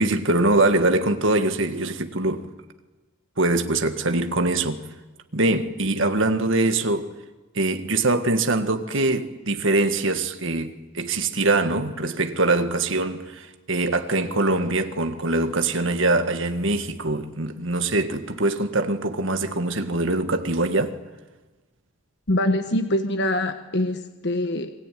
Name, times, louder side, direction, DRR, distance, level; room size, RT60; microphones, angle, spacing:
voice 1, 0.0-2.5 3.4-4.8 5.3-7.1 7.5-21.0, right 2 dB, 60° right, 1.8 m, -23 dB
voice 2, 22.3-24.7, left 1 dB, 55° left, 1.3 m, -24 dB
28.5 x 22.0 x 9.3 m
head